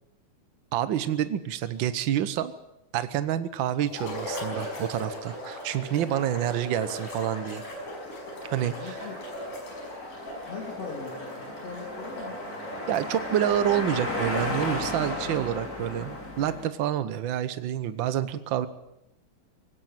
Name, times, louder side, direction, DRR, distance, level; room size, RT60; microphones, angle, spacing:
voice 1, 0.7-2.5 2.9-7.6 8.5-9.1 12.9-18.7, right 10 dB, 90° right, 13 dB, 1.0 m, -28 dB
sound 1, 3.9-13.7, left 1 dB, 90° left, 7.0 m, -38 dB
sound 2, 7.6-16.6, left 2 dB, 30° left, 4.6 m, -36 dB
voice 2, 8.6-9.2 10.4-12.4, left 5 dB, 55° left, -1 dB, 3.8 m, -40 dB
19.0 x 16.5 x 9.1 m, 0.85 s
omnidirectional pair, 3.5 m